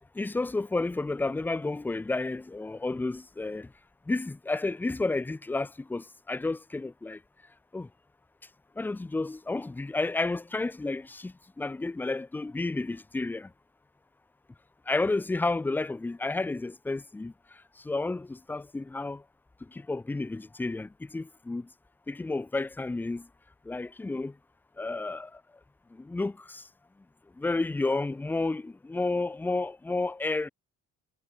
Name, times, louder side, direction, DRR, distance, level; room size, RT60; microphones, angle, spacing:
voice 1, 0.2-3.7 4.1-7.2 7.7-7.9 8.8-13.5 14.9-17.3 17.8-19.2 19.7-21.7 22.1-23.3 23.7-24.3 24.8-25.3 26.0-26.6 27.4-30.5, left 3 dB, 5° left, 0.3 m, -31 dB
cardioid pair, 160°, 31 cm